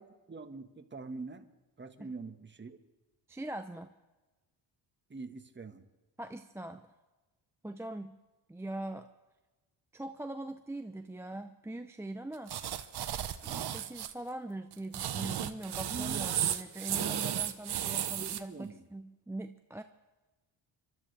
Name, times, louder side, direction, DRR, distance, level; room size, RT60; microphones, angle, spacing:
voice 1, 0.0-1.5 1.8-2.8 5.1-5.9 15.9-16.3 18.1-18.9, right 3 dB, 25° right, 6 dB, 1.4 m, -44 dB
voice 2, 3.3-3.9 6.2-6.9 7.6-8.2 8.5-9.1 9.9-12.6 13.4-19.8, right 1 dB, 5° right, 7 dB, 0.5 m, -42 dB
sound 1, 12.5-14.1 14.7-18.4, right 10 dB, 55° right, 1.0 m, -34 dB
26.0 x 12.5 x 3.3 m, 1.2 s
cardioid pair, 80°, 47 cm